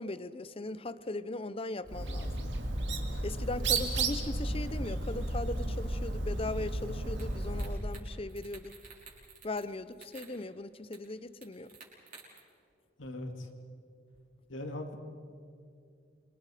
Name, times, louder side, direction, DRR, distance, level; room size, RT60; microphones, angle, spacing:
voice 1, 0.0-2.5 3.2-8.7 9.4-11.7, left 2 dB, 30° left, 15 dB, 0.7 m, -39 dB
Bird, 1.9-7.8, right 2 dB, 65° right, 2.1 m, -33 dB
sound 1, 7.2-7.3 7.6-8.0 8.3-9.7 9.9-10.3 10.9-11.0 11.4-12.4, right 5 dB, 45° right, 5.7 m, -51 dB
voice 2, 13.0-13.5 14.5-15.0, left 1 dB, 80° left, 4 dB, 2.5 m, -39 dB
28.0 x 24.5 x 5.0 m, 2.3 s
head